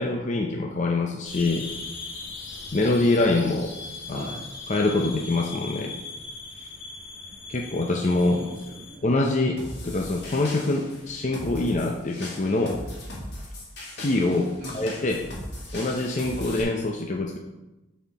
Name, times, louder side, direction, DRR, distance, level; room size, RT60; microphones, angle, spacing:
voice 1, 0.0-1.7 2.7-3.7 4.1-4.3 4.7-6.0 7.5-8.4 9.0-12.8 14.0-15.3 15.7-17.4, left 2 dB, 35° left, 1 dB, 0.5 m, -25 dB
sound 1, 1.2-9.0, left 3 dB, 75° left, 1.3 m, -39 dB
voice 2, 4.1-4.4 8.2-9.2 14.6-14.8, equal, 40° right, -5 dB, 2.2 m, -39 dB
sound 2, 9.6-16.6, left 1 dB, 55° left, 2.1 m, -39 dB
9.5 x 4.3 x 4.1 m, 1.0 s
head